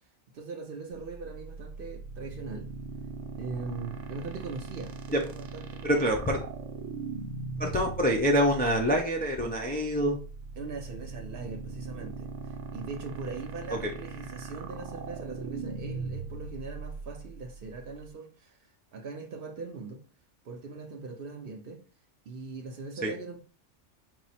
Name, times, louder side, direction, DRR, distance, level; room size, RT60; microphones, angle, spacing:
voice 1, 0.3-2.7 3.4-6.0 10.6-20.0 20.4-21.8 22.3-23.4, right 4 dB, 55° right, 0.7 m, -41 dB
sound 1, 0.9-18.1, right 4 dB, 80° right, 0.9 m, -40 dB
voice 2, 5.8-6.4 7.6-10.2 13.7-13.9 23.0-23.1, equal, 15° left, 0.3 m, -26 dB
4.6 x 2.0 x 4.1 m
omnidirectional pair, 1.2 m